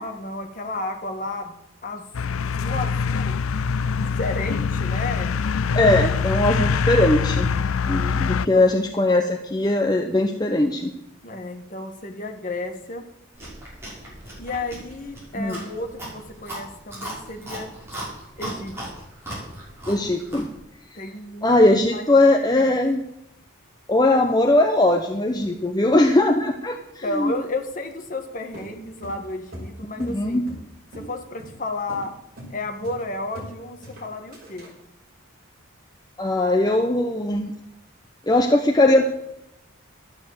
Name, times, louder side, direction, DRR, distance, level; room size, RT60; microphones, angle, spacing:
voice 1, 0.0-1.5 1.8-3.4 3.9-5.4 8.3-8.7 11.2-13.1 14.4-17.7 18.4-18.8 20.9-21.6 21.9-22.0 22.4-22.7 27.0-30.5 30.9-32.1 32.5-34.7, left 2 dB, 40° left, 4 dB, 1.7 m, -32 dB
sound 1, 2.1-8.5, left 5 dB, 90° left, 0.5 m, -24 dB
voice 2, 5.7-7.5 7.9-10.9 15.3-15.7 19.9-20.5 20.9-21.0 21.4-23.0 23.9-27.3 30.0-30.5 36.2-37.5 38.3-39.0, left 2 dB, 20° left, 3 dB, 0.8 m, -20 dB
Chewing mastication, 13.3-20.6, right 1 dB, 10° right, 6.6 m, -37 dB
sound 2, 28.5-30.7 30.9-31.1 31.4-31.6 31.9-32.1 32.4-32.6 32.8-33.5 33.8-34.7, equal, 45° right, 5.8 m, -40 dB
13.0 x 9.4 x 7.9 m, 0.86 s
head